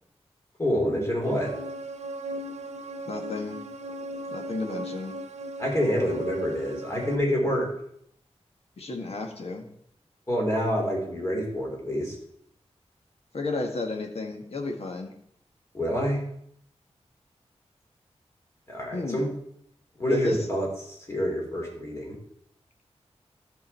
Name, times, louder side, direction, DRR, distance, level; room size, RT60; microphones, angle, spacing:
voice 1, 0.6-1.5 5.6-7.7 10.3-12.2 15.7-16.2 18.7-19.3 20.0-22.2, equal, 25° left, -1 dB, 3.5 m, -27 dB
sound 1, 1.2-7.2, right 1 dB, 85° right, 0.8 m, -37 dB
voice 2, 3.0-3.6 4.3-5.2 8.8-9.6 13.3-15.1 18.9-19.2 20.1-20.4, left 2 dB, 65° left, 3 dB, 1.7 m, -32 dB
13.5 x 6.5 x 4.4 m, 0.69 s
wide cardioid pair, 125°, 11 cm